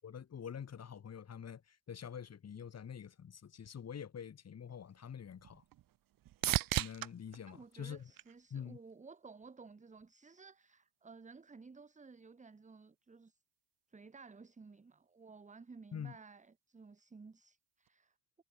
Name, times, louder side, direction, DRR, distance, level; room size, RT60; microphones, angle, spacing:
voice 1, 0.0-1.6 1.9-5.6 6.4-6.5 6.8-8.1 8.5-8.8 15.9-16.1, left 8 dB, 35° left, 2.6 m, -46 dB
sound 1, 4.7-8.9 9.4-10.0 17.9-18.0, right 13 dB, 50° right, 1.0 m, -40 dB
voice 2, 7.4-13.4 13.9-18.1, right 4 dB, 15° right, 1.6 m, -55 dB
cardioid pair, 110°, 44 cm